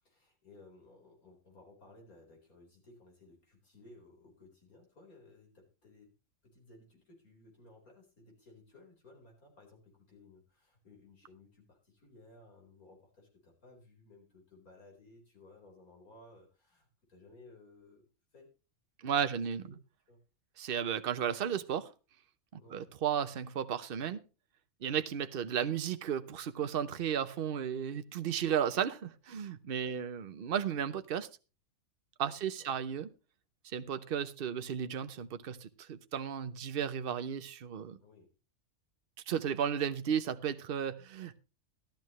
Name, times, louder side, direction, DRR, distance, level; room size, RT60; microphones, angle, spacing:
voice 1, 0.0-6.1 6.4-18.1 18.3-18.5 19.1-19.8 20.1-20.2 22.6-22.9 29.8-30.0 32.4-32.7 38.0-38.3, left 2 dB, 85° left, 4.8 m, -58 dB
voice 2, 19.0-19.6 20.6-21.9 22.5-24.2 24.8-31.3 32.2-33.1 33.6-38.0 39.3-41.4, right 8 dB, 50° right, 0.9 m, -34 dB
13.0 x 12.5 x 3.1 m
omnidirectional pair, 1.5 m